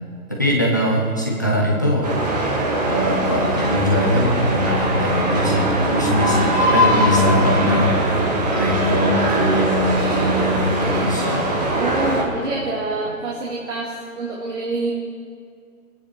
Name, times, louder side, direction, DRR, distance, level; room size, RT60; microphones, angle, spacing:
voice 1, 0.3-2.1 2.9-7.9 8.5-11.5, left 1 dB, 15° left, -3 dB, 0.7 m, -21 dB
sound 1, 2.0-12.2, right 1 dB, 30° right, 1.8 m, -21 dB
voice 2, 11.8-14.9, right 3 dB, 55° right, -4 dB, 2.4 m, -26 dB
23.0 x 9.8 x 4.5 m, 2.2 s
hypercardioid pair, 165°, 44 cm